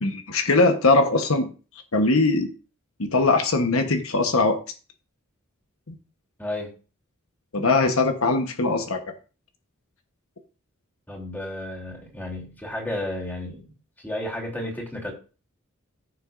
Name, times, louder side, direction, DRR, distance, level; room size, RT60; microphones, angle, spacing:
voice 1, 0.0-1.5 1.9-2.5 3.0-4.6 5.9-6.0 7.5-9.0, left 3 dB, 80° left, 6 dB, 1.1 m, -21 dB
voice 2, 6.4-6.7 11.1-13.6 14.0-15.1, left 1 dB, 10° left, -2 dB, 3.1 m, -32 dB
14.0 x 6.8 x 2.6 m, 0.35 s
head